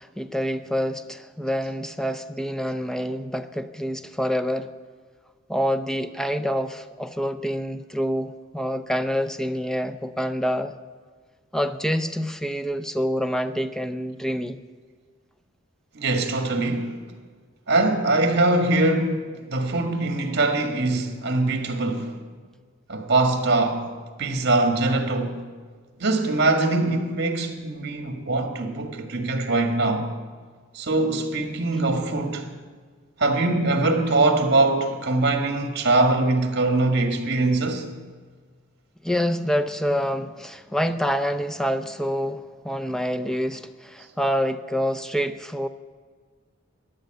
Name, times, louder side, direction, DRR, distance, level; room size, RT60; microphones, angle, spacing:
voice 1, 0.0-4.7 5.5-10.7 11.5-14.6 39.0-45.7, equal, 5° left, 0.5 m, -27 dB
voice 2, 15.9-16.9 17.7-19.2 19.5-22.2 22.9-23.9 24.2-25.4 26.0-30.1 30.7-32.5 33.2-37.9, right 2 dB, 55° right, 1.8 m, -22 dB
13.5 x 10.5 x 7.8 m
head